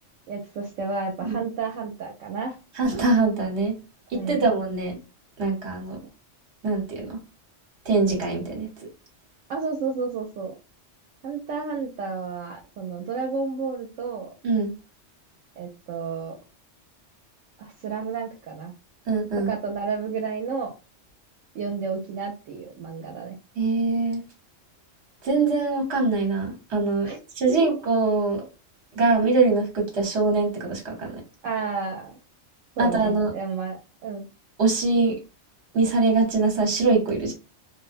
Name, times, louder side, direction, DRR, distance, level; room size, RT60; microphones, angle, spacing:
voice 1, 0.3-2.6 4.1-4.4 9.5-10.5 11.2-14.3 15.6-16.4 17.6-18.7 19.4-20.7 21.5-23.4 27.0-27.2 31.4-32.1 32.8-34.3, right 5 dB, 80° right, 0.9 m, -31 dB
voice 2, 2.8-3.8 4.1-5.0 5.4-6.0 6.6-7.2 7.9-8.7 14.4-14.7 19.1-19.5 23.6-24.2 25.2-28.4 28.9-31.2 32.8-33.3 34.6-35.2 35.7-37.4, right 3 dB, 65° right, 1.2 m, -23 dB
2.4 x 2.1 x 2.4 m
omnidirectional pair, 1.3 m